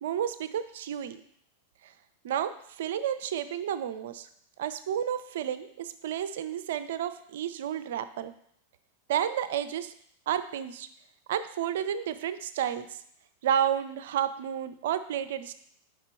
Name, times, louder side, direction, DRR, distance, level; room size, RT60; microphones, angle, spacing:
voice 1, 0.0-1.2 1.8-1.9 2.2-4.3 4.6-8.3 9.1-9.9 10.3-10.9 11.3-13.0 13.4-15.5, right 9 dB, 55° right, 12 dB, 0.4 m, -31 dB
5.0 x 4.7 x 4.4 m, 0.68 s
figure-of-eight pair, 90°, 0 cm